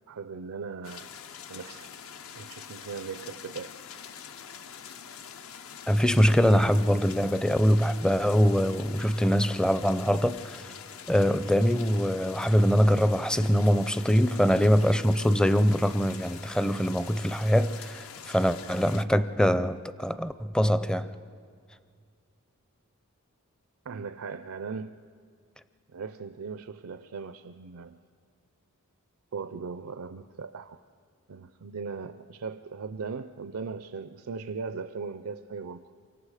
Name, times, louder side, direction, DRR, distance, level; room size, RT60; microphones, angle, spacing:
voice 1, 0.1-1.1 1.5-1.9 2.3-3.8 23.8-25.0 25.9-28.0 29.3-30.8 31.3-35.8, right 5 dB, 80° right, 10 dB, 0.5 m, -38 dB
sound 1, 0.8-19.0, left 7 dB, 70° left, 0.7 m, -45 dB
voice 2, 5.9-10.7 11.1-21.1, equal, 5° left, 13 dB, 0.5 m, -23 dB
28.0 x 24.5 x 4.9 m, 2.2 s
head